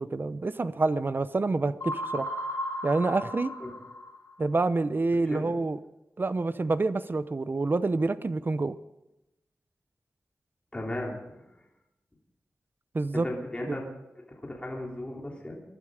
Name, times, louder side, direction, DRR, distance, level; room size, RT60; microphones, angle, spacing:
voice 1, 0.0-2.3 2.8-3.5 4.4-5.8 6.2-8.8 12.9-13.3 13.7-13.8, right 3 dB, 40° right, 13 dB, 0.8 m, -27 dB
sound 1, 1.8-4.4, left 1 dB, 80° left, 5.6 m, -35 dB
voice 2, 10.7-11.4 13.2-13.8 14.4-15.6, left 1 dB, 20° left, -2 dB, 3.4 m, -35 dB
22.0 x 12.0 x 5.0 m, 0.94 s
wide cardioid pair, 105°, 5 cm